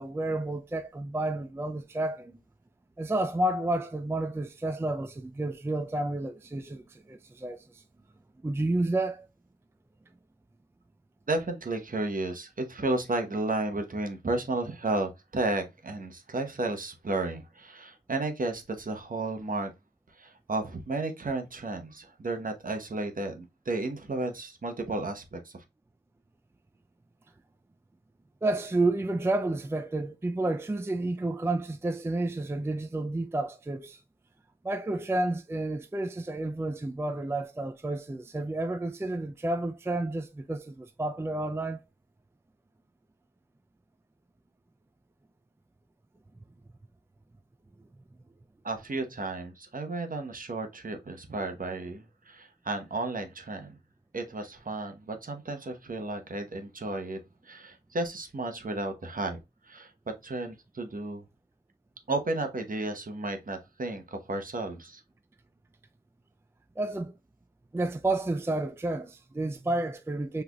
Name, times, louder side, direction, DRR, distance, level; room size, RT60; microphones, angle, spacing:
voice 1, 0.0-2.3 3.0-6.8 7.1-7.6 8.4-9.3 28.4-34.0 34.6-41.8 66.8-67.1 67.7-70.4, right 2 dB, 15° right, 0.4 m, -30 dB
voice 2, 11.3-19.7 20.2-25.6 48.6-53.8 54.1-57.2 57.4-59.4 59.7-59.9 60.2-61.2 62.1-65.0, right 2 dB, 55° right, 1.0 m, -33 dB
5.9 x 3.4 x 2.3 m
wide cardioid pair, 60°, 17 cm